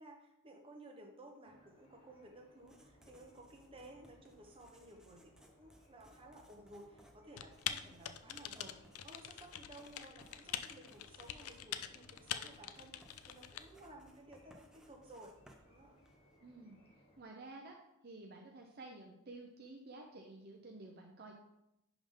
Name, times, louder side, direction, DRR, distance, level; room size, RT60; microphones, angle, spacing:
voice 1, 0.0-8.7 9.0-15.3 15.6-16.0, right 1 dB, 25° right, 1 dB, 0.9 m, -56 dB
sound 1, 1.4-17.2, equal, 25° left, 1.1 m, -67 dB
Writing, 2.5-16.4, equal, 5° right, 0.6 m, -65 dB
Typing, 7.4-13.6, left 10 dB, 75° left, 0.4 m, -44 dB
voice 2, 16.4-16.8 17.2-17.8 18.0-21.4, right 2 dB, 45° right, 1 dB, 0.6 m, -52 dB
10.5 x 3.6 x 3.7 m, 0.86 s
head